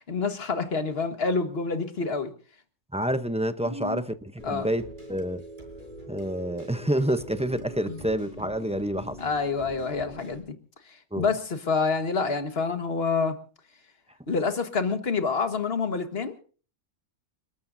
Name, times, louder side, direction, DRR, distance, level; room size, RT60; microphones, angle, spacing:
voice 1, 0.1-2.3 3.6-4.0 4.4-4.7 7.9-8.0 9.2-10.4 11.2-13.3 14.3-16.4, left 4 dB, 55° left, 1.8 m, -27 dB
voice 2, 2.9-5.4 6.1-9.2 11.1-11.3, right 1 dB, 5° right, 0.5 m, -28 dB
sound 1, 4.4-10.4, right 1 dB, 40° right, 5.8 m, -43 dB
29.5 x 13.5 x 2.7 m
omnidirectional pair, 1.3 m